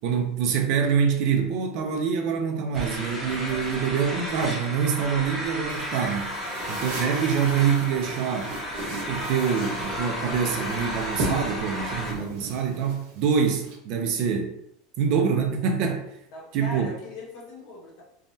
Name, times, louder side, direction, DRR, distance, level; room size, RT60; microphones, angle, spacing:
voice 1, 0.0-6.3 6.7-8.5 8.9-14.5 15.0-16.1 16.5-16.9, right 6 dB, 45° right, 4 dB, 0.4 m, -25 dB
sound 1, 2.7-12.1, equal, 5° left, 0.7 m, -33 dB
sound 2, 5.7-13.7, right 2 dB, 80° right, 1.1 m, -37 dB
voice 2, 6.4-6.8 16.3-18.0, left 2 dB, 50° left, -3 dB, 1.0 m, -40 dB
3.4 x 2.1 x 2.6 m, 0.76 s
supercardioid pair, 175°, 0 cm